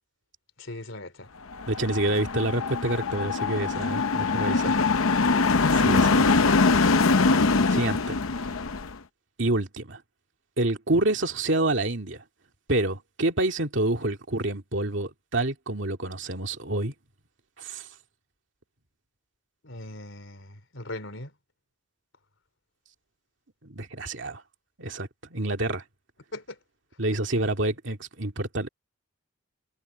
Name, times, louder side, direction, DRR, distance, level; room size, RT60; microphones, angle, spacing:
voice 1, 0.6-1.3 4.5-4.9 19.6-21.3 26.3-26.6, left 2 dB, 65° left, 3.9 m, -39 dB
sound 1, 1.5-8.9, left 4 dB, 85° left, 0.8 m, -23 dB
voice 2, 1.7-4.8 5.7-6.3 7.7-8.5 9.4-10.0 10.6-12.2 12.7-16.9 17.6-17.9 23.6-24.4 24.8-25.8 27.0-28.7, right 2 dB, 60° right, 2.4 m, -28 dB
head